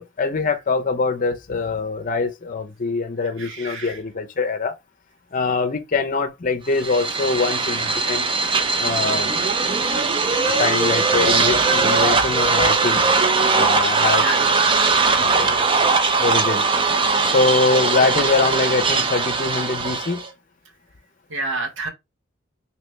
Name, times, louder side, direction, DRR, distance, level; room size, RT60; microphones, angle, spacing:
voice 1, 0.0-4.7 5.3-8.3 8.8-9.3 10.6-13.0 13.5-14.2 15.1-15.7 16.2-16.7 17.2-20.2, left 4 dB, 45° left, 0.6 m, -23 dB
voice 2, 3.2-4.0 14.2-14.5 21.3-21.9, right 2 dB, 70° right, 1.1 m, -29 dB
sound 1, 6.7-20.3, right 4 dB, 25° right, 0.5 m, -20 dB
3.2 x 2.9 x 3.1 m
head